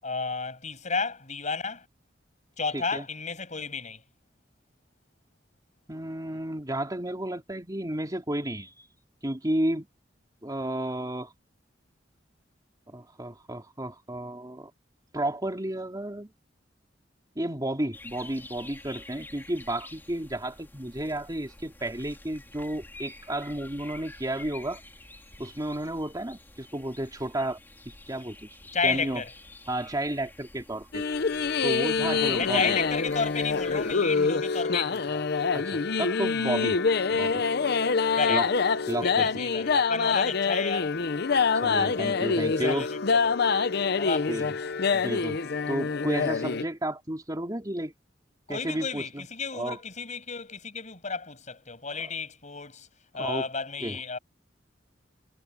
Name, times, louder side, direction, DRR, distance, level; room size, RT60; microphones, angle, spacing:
voice 1, 0.0-1.9 2.6-4.0 28.7-29.3 32.0-35.3 38.1-38.4 39.0-41.0 42.4-43.4 44.0-44.5 48.5-52.9 53.1-54.2, left 4 dB, 40° left, 7.9 m, -32 dB
voice 2, 2.7-3.0 5.9-8.9 9.2-9.9 10.4-11.3 12.9-14.7 15.1-16.3 17.3-24.8 25.4-27.6 27.8-28.5 28.8-29.2 29.7-31.0 31.6-32.7 35.5-36.8 37.1-37.4 38.3-38.4 38.9-39.3 41.5-42.9 44.3-44.5 44.9-45.4 45.7-47.9 48.5-49.2 49.5-49.8 53.1-53.5 53.8-54.0, right 1 dB, 20° right, 3.1 m, -32 dB
sound 1, 17.9-34.0, left 2 dB, 10° left, 3.1 m, -49 dB
sound 2, 30.9-46.6, left 5 dB, 60° left, 0.7 m, -26 dB
head